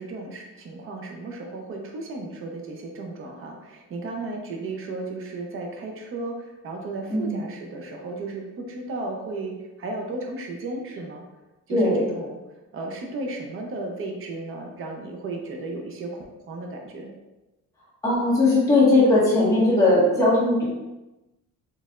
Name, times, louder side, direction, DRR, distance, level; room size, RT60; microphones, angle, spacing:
voice 1, 0.0-11.2 11.7-12.4 12.7-17.1, right 2 dB, 45° right, 1 dB, 0.6 m, -34 dB
voice 2, 11.7-12.0 18.0-20.6, left 2 dB, 10° left, -9 dB, 1.4 m, -19 dB
4.3 x 3.2 x 2.4 m, 1.0 s
cardioid pair, 175°, 31 cm